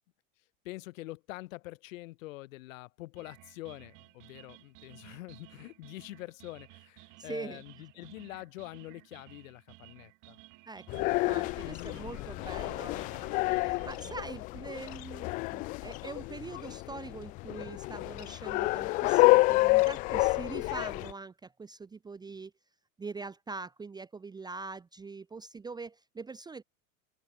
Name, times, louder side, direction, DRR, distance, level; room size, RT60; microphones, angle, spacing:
voice 1, 0.6-10.4 11.6-13.0, left 19 dB, 65° left, 7.4 m, -45 dB
sound 1, 3.2-14.2, right 25 dB, 45° right, 5.9 m, -55 dB
voice 2, 7.2-7.6 10.7-13.0 13.6-22.5 23.0-26.6, right 4 dB, 10° right, 0.9 m, -43 dB
sound 2, 10.9-21.1, left 23 dB, 20° left, 0.3 m, -29 dB
open air
supercardioid pair, 135°, 43 cm